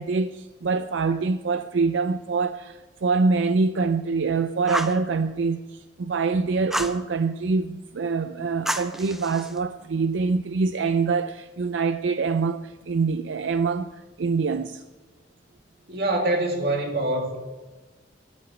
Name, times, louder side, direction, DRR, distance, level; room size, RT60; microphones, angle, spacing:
voice 1, 0.0-14.8, right 4 dB, 80° right, 0.5 m, -25 dB
Fire, 4.7-5.0 6.7-7.0 8.7-9.6, equal, ahead, 0.6 m, -29 dB
voice 2, 15.9-17.4, right 1 dB, 55° right, 2.5 m, -24 dB
12.5 x 7.8 x 8.0 m
head